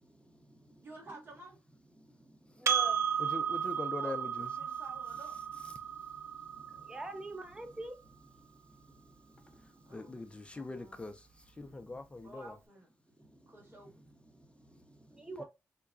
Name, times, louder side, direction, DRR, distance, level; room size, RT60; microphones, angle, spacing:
voice 1, 0.0-0.9 1.9-3.2 5.8-10.1 11.6-11.9 13.2-14.0 14.3-15.4, right 1 dB, 15° right, 0.8 m, -49 dB
voice 2, 0.8-1.6 4.0-5.4 9.8-10.2 10.5-11.0 12.2-12.9 13.5-13.9 15.4-15.5, right 2 dB, 40° right, 1.9 m, -52 dB
Percussion, 2.7-7.5, right 8 dB, 60° right, 0.5 m, -34 dB
voice 3, 3.2-4.8 5.6-5.7 9.9-12.6 15.4-15.5, left 3 dB, 20° left, 0.4 m, -42 dB
4.6 x 2.2 x 2.4 m
cardioid pair, 80°, 5 cm